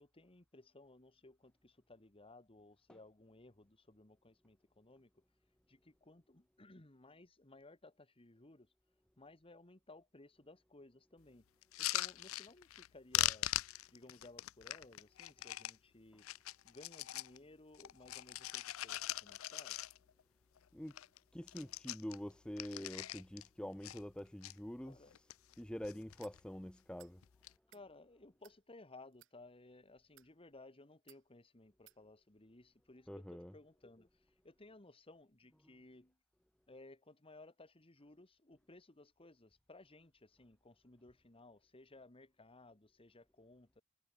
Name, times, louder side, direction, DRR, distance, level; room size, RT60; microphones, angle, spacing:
voice 1, 0.0-5.2 5.7-8.7 9.2-11.4 11.8-13.5 13.9-16.3 16.6-19.8 24.8-25.2 27.7-34.1 34.4-36.2 36.7-43.8, left 2 dB, 25° left, 1.7 m, -59 dB
sound 1, 11.6-12.9 13.1-15.8 16.2-17.4 17.7-20.2 20.6-20.7 20.9-21.2 21.4-23.5 23.8-24.5 25.1-25.6 25.8-26.4 27.2-27.5, left 15 dB, 70° left, 0.5 m, -41 dB
voice 2, 21.3-25.2 25.6-27.2 33.1-33.5, equal, 5° left, 0.6 m, -46 dB
sound 2, 26.2-26.4 27.0-27.2 27.6-27.9 28.4-28.6 29.1-29.3 30.0-30.3 31.1-31.2 31.9-32.0, right 14 dB, 65° right, 2.6 m, -63 dB
head